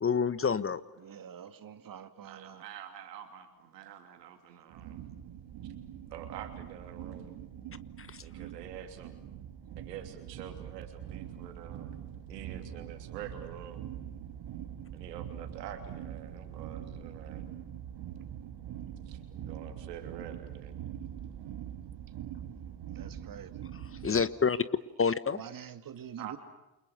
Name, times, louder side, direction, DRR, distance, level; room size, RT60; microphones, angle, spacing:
voice 1, 0.0-0.8 8.0-8.2 24.0-24.6 25.0-25.4, left 6 dB, 25° left, 1.3 m, -28 dB
voice 2, 1.0-2.7 4.5-4.6 22.8-23.6 25.3-26.4, right 9 dB, 40° right, 2.3 m, -46 dB
voice 3, 2.2-5.0 5.6-5.7 6.1-7.4 8.2-9.1 9.8-11.9 12.3-13.8 14.9-17.5 19.0-20.8 26.2-26.3, right 9 dB, 75° right, 3.1 m, -46 dB
sound 1, 4.7-24.2, right 10 dB, 55° right, 2.7 m, -43 dB
29.5 x 28.0 x 6.8 m
figure-of-eight pair, 45°, 50 cm